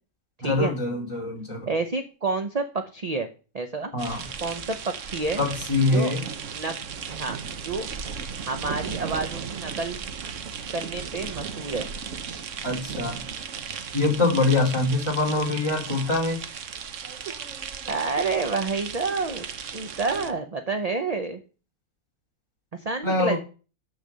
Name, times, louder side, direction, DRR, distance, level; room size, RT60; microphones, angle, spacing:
voice 1, 0.4-1.7 3.9-4.3 5.4-6.2 12.6-13.2 13.9-16.4 23.0-23.4, left 2 dB, 20° left, 0 dB, 3.0 m, -24 dB
voice 2, 1.7-2.6 2.9-3.3 3.5-3.9 4.4-5.4 5.9-6.1 6.5-6.7 7.1-7.4 7.6-7.9 8.5-10.0 10.7-11.9 17.9-19.5 19.7-21.4 22.7-23.4, right 3 dB, 35° right, 7 dB, 0.7 m, -29 dB
sound 1, 4.0-20.3, right 6 dB, 60° right, 1.1 m, -36 dB
8.0 x 6.6 x 6.7 m, 0.36 s
omnidirectional pair, 1.6 m